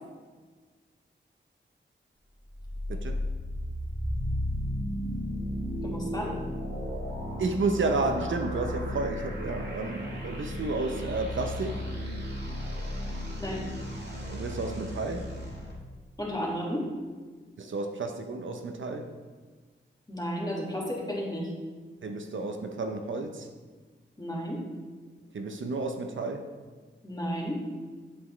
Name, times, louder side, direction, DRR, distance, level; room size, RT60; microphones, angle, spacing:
sound 1, 2.5-15.7, equal, 55° right, 1.9 m, -34 dB
voice 1, 5.8-6.4 13.4-13.7 16.2-16.9 20.1-21.5 24.2-24.6 27.0-27.6, equal, 20° left, -3 dB, 1.8 m, -33 dB
voice 2, 7.4-11.8 14.3-15.3 17.6-19.1 22.0-23.5 25.3-26.5, right 3 dB, 70° right, 5 dB, 0.6 m, -31 dB
7.8 x 6.1 x 3.1 m, 1.4 s
cardioid pair, 55°, 20 cm